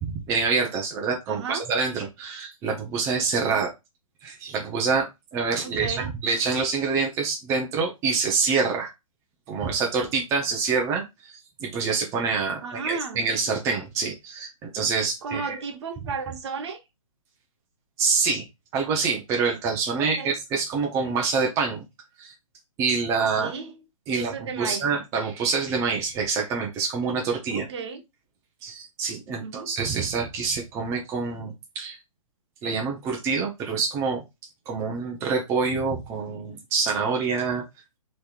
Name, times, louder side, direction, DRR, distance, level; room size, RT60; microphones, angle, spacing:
voice 1, 0.0-3.7 4.2-8.9 9.5-15.6 18.0-18.5 18.7-21.8 22.2-22.3 22.8-23.5 24.1-27.7 28.6-32.0 32.6-34.2 34.7-37.6, right 5 dB, 15° right, 0.6 m, -26 dB
voice 2, 1.3-1.6 3.4-3.7 5.6-6.1 12.6-13.3 15.2-16.8 20.0-20.3 23.4-23.8 24.1-24.9 27.5-28.0 29.4-29.7, right 5 dB, 50° right, 0.7 m, -34 dB
3.4 x 3.0 x 2.3 m
hypercardioid pair, 145°, 18 cm